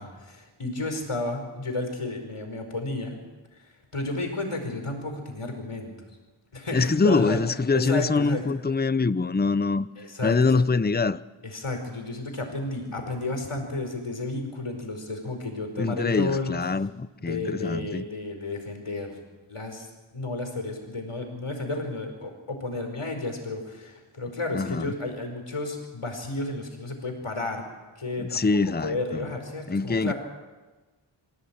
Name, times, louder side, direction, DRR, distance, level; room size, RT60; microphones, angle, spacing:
voice 1, 0.0-3.2 3.5-5.9 6.5-7.4 7.7-8.4 10.0-10.5 11.4-16.5 17.2-19.2 19.5-27.6 28.0-28.4 28.8-30.1, left 2 dB, 85° left, 5.0 m, -32 dB
voice 2, 6.7-9.9 10.2-11.2 15.8-18.0 24.5-24.9 28.2-29.2 29.7-30.1, left 4 dB, 20° left, 0.6 m, -24 dB
26.0 x 16.5 x 8.8 m
wide cardioid pair, 50°, 50 cm